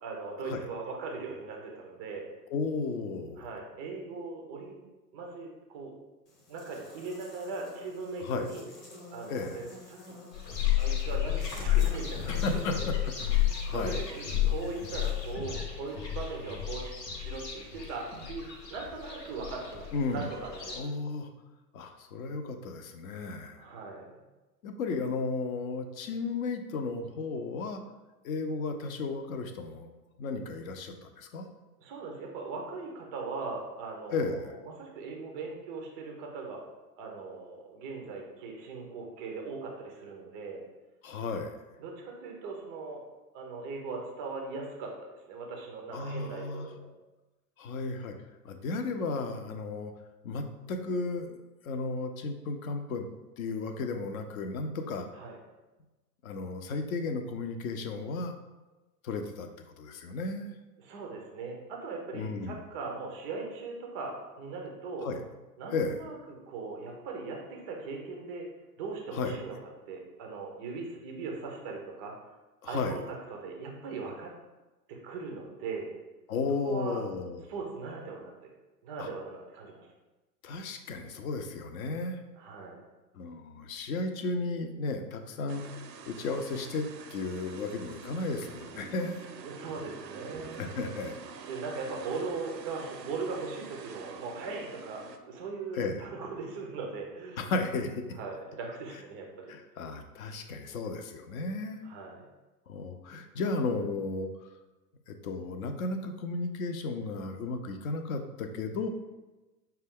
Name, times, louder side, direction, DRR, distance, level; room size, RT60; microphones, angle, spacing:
voice 1, 0.0-2.3 3.4-4.8 5.1-5.9 6.5-8.6 9.1-10.0 10.7-12.6 13.0-13.1 13.7-20.9 23.6-24.1 31.8-36.6 37.0-40.6 41.8-43.0 43.3-46.9 55.1-55.4 60.8-65.1 65.6-68.4 68.8-69.5 69.9-72.1 72.6-73.0 73.3-74.3 74.9-75.9 76.6-77.0 77.5-78.3 78.8-79.9 82.3-82.8 89.4-90.7 91.5-97.4 98.1-99.5 101.8-102.2, right 4 dB, 15° right, 0 dB, 0.3 m, -39 dB
voice 2, 2.5-3.5 8.2-8.5 9.3-9.6 12.3-13.1 13.6-14.0 19.9-20.3 20.7-21.3 21.7-23.6 24.6-27.8 28.2-29.9 30.2-31.4 34.1-34.5 41.0-41.6 45.9-46.7 47.6-48.1 48.4-49.9 50.2-51.4 51.6-53.1 53.4-55.1 56.2-58.3 59.0-59.5 59.8-60.5 62.1-62.6 65.0-65.2 65.7-66.0 69.1-69.4 72.6-73.0 76.3-77.4 79.0-79.1 80.4-82.2 83.1-85.6 86.0-89.2 90.6-91.2 95.7-96.1 97.4-98.0 99.5-101.8 102.7-104.5 105.1-108.9, left 3 dB, 60° left, 6 dB, 0.7 m, -34 dB
Buzz, 6.3-15.3, left 3 dB, 20° left, 0.9 m, -49 dB
sound 1, 10.3-20.8, left 11 dB, 85° left, 1.0 m, -31 dB
sound 2, 85.5-95.2, right 5 dB, 90° right, 0.6 m, -46 dB
5.6 x 2.3 x 3.5 m, 1.1 s
hypercardioid pair, 105°, 49 cm